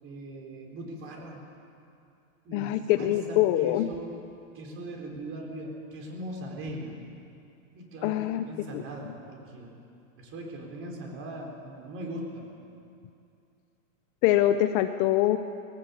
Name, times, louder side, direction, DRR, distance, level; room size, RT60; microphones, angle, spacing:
voice 1, 0.0-1.4 2.4-2.7 3.0-4.1 4.5-6.9 7.7-8.2 8.5-9.7 10.2-12.5, right 1 dB, 30° right, 0 dB, 4.5 m, -39 dB
voice 2, 2.5-3.9 8.0-8.5 8.7-8.8 14.2-15.4, left 13 dB, 35° left, 9 dB, 0.7 m, -24 dB
20.5 x 17.5 x 8.4 m, 2.6 s
supercardioid pair, 150°, 41 cm